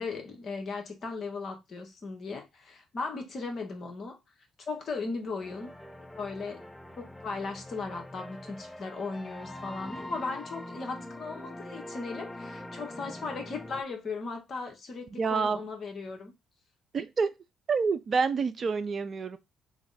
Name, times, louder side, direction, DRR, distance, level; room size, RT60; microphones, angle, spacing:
voice 1, 0.0-4.2 4.6-5.8 6.1-6.6 6.9-16.3, left 4 dB, 50° left, 0.9 m, -37 dB
sound 1, 5.4-13.8, left 1 dB, 10° left, 0.5 m, -43 dB
voice 2, 15.2-15.6 16.9-17.3 17.7-19.4, right 5 dB, 45° right, 0.4 m, -27 dB
3.4 x 2.0 x 3.9 m
hypercardioid pair, 45°, 0 cm